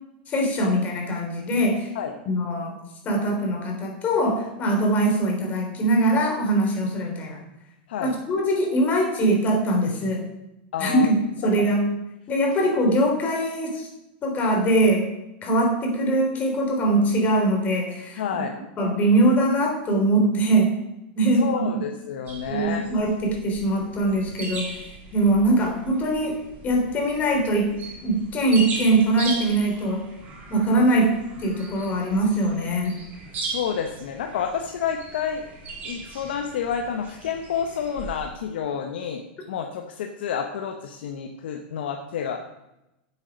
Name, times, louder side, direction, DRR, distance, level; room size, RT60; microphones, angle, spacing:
voice 1, 0.3-1.9 2.2-2.8 3.0-7.4 8.0-10.3 10.8-11.9 12.3-13.9 14.2-15.1 15.4-18.2 18.8-20.8 21.1-21.8 22.5-24.8 25.1-27.8 28.0-30.1 30.5-33.0, right 1 dB, 30° left, 1 dB, 3.4 m, -22 dB
voice 2, 10.7-11.1 18.2-18.5 21.4-22.8 33.4-35.4 35.8-42.4, left 7 dB, 80° left, 4 dB, 1.0 m, -29 dB
sound 1, 22.3-38.3, right 3 dB, 30° right, 3.2 m, -38 dB
9.5 x 7.9 x 5.2 m, 0.91 s
supercardioid pair, 135°, 6 cm